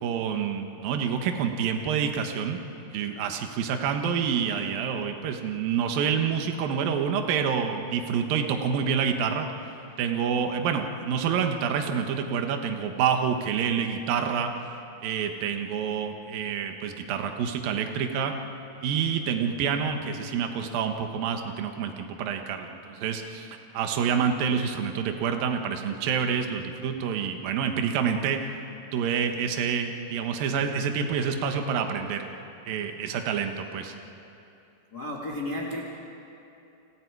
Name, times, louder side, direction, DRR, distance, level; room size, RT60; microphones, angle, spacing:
voice 1, 0.0-9.5 10.0-14.5 15.0-18.3 18.8-28.5 28.9-32.3 32.7-33.9, right 7 dB, 65° right, 5 dB, 2.6 m, -27 dB
voice 2, 24.1-24.5 34.9-35.9, left 1 dB, 55° left, -1 dB, 1.0 m, -34 dB
29.5 x 26.5 x 4.8 m, 2.8 s
omnidirectional pair, 5.3 m